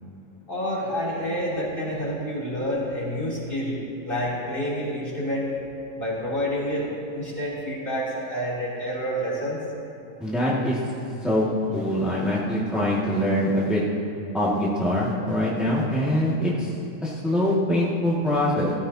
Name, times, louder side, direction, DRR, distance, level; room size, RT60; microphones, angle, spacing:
voice 1, 0.5-5.5 6.0-9.6, equal, 15° left, -7 dB, 3.0 m, -28 dB
voice 2, 10.2-10.8 11.2-11.4 11.7-13.8 14.3-16.7 17.0-18.7, left 1 dB, ahead, -8 dB, 0.7 m, -23 dB
18.5 x 14.5 x 2.8 m, 2.8 s
omnidirectional pair, 3.9 m